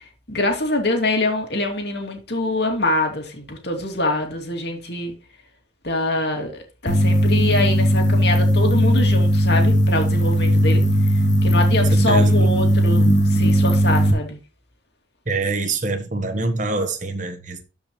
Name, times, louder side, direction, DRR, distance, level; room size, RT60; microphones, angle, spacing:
voice 1, 0.3-5.1 5.8-10.8 11.4-14.4, left 2 dB, 55° left, 2.6 m, -24 dB
sound 1, 6.9-14.1, equal, 40° left, 1.4 m, -17 dB
voice 2, 11.9-12.3 15.3-17.6, right 3 dB, 40° right, 1.3 m, -25 dB
12.5 x 5.4 x 3.2 m
head